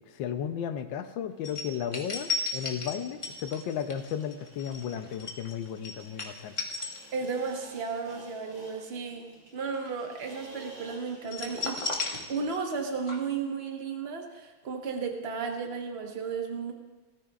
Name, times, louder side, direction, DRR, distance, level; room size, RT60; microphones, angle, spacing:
voice 1, 0.0-6.6, left 8 dB, 75° left, 9 dB, 1.4 m, -34 dB
sound 1, 1.4-7.5 7.9-8.1 11.3-12.8 13.1-13.2, left 3 dB, 20° left, 1.1 m, -35 dB
sound 2, 2.6-13.4, right 2 dB, 90° right, 3.6 m, -53 dB
voice 2, 7.1-11.8 12.3-16.7, right 5 dB, 35° right, 2 dB, 1.3 m, -34 dB
19.5 x 13.5 x 2.4 m, 1.2 s
omnidirectional pair, 2.2 m